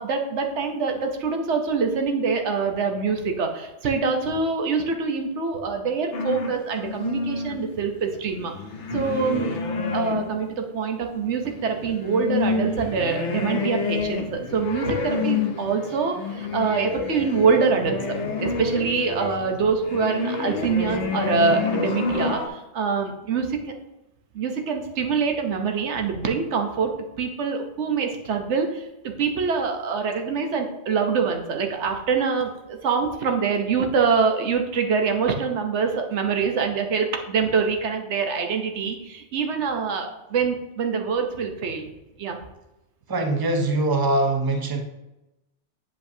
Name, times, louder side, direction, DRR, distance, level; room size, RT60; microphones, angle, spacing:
voice 1, 0.0-8.5 8.9-9.6 9.9-18.2 18.4-23.7 24.3-41.9 42.2-42.4, right 5 dB, 80° right, 4 dB, 1.1 m, -25 dB
sound 1, 6.1-10.6 11.3-22.5, left 4 dB, 90° left, 1.1 m, -29 dB
voice 2, 43.1-44.8, right 2 dB, 25° right, 4 dB, 0.7 m, -22 dB
9.3 x 5.2 x 2.7 m, 0.96 s
omnidirectional pair, 1.2 m